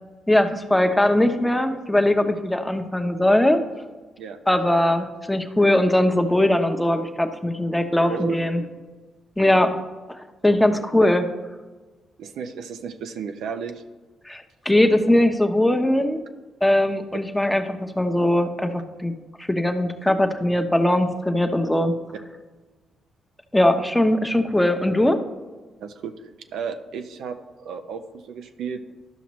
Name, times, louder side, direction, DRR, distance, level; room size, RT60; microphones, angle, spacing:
voice 1, 0.3-3.6 4.5-8.6 9.4-9.8 10.2-11.2 14.3-16.2 16.6-19.1 19.4-21.9 23.5-25.2, left 1 dB, 5° left, 6 dB, 0.9 m, -20 dB
voice 2, 8.1-8.7 10.7-10.8 12.2-13.8 25.8-26.1 26.5-28.8, right 6 dB, 80° right, 7 dB, 0.6 m, -33 dB
12.0 x 5.7 x 3.1 m, 1.3 s
supercardioid pair, 65°, 0 cm